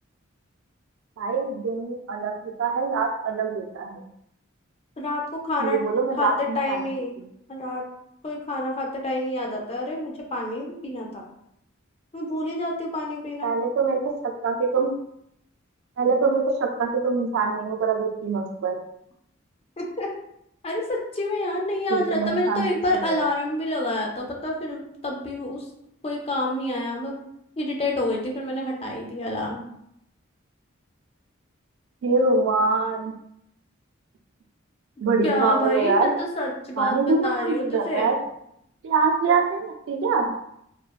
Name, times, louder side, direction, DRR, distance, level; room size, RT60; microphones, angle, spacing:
voice 1, 1.2-4.0 5.6-6.8 13.4-14.9 16.0-18.8 21.9-22.7 23.0-23.1 32.0-33.1 35.0-36.1 36.8-38.1 38.8-40.3, right 4 dB, 70° right, 2 dB, 0.3 m, -24 dB
voice 2, 5.0-5.8 6.2-7.1 7.5-7.8 8.2-11.2 12.1-13.5 19.8-20.1 20.6-25.6 26.0-27.2 27.6-29.6 35.2-38.1, left 1 dB, 30° left, -1 dB, 0.4 m, -28 dB
3.2 x 2.1 x 2.2 m, 0.76 s
head